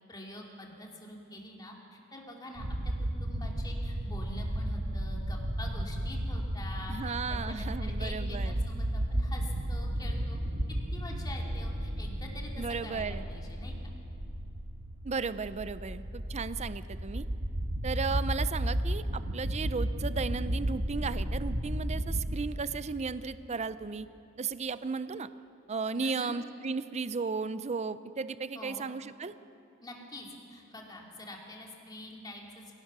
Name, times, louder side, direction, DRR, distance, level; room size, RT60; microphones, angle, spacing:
voice 1, 0.1-2.9 3.2-10.4 10.7-13.7 25.9-26.4 28.5-28.9 29.8-32.7, left 1 dB, 20° left, -1 dB, 2.7 m, -46 dB
sound 1, 2.6-22.4, right 1 dB, 50° right, 1.4 m, -33 dB
voice 2, 6.9-8.5 12.6-13.2 15.0-17.2 17.8-24.1 24.4-25.3 25.7-29.3, right 5 dB, 30° right, 14 dB, 0.5 m, -35 dB
25.5 x 17.5 x 6.1 m, 2.7 s
head